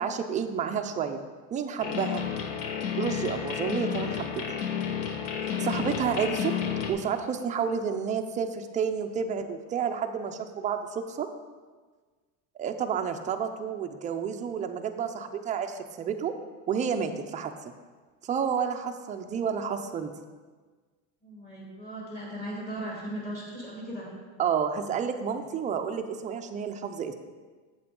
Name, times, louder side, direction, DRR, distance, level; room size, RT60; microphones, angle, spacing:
voice 1, 0.0-2.2 3.0-4.4 5.6-6.5 6.9-11.3 12.6-16.3 16.7-17.7 18.2-20.1 24.4-27.1, right 7 dB, 20° right, 6 dB, 0.4 m, -30 dB
sound 1, 1.8-6.9, left 8 dB, 65° left, 1.0 m, -31 dB
voice 2, 21.2-24.1, right 1 dB, 20° left, -4 dB, 2.2 m, -38 dB
8.5 x 7.7 x 3.7 m, 1.4 s
supercardioid pair, 135°, 42 cm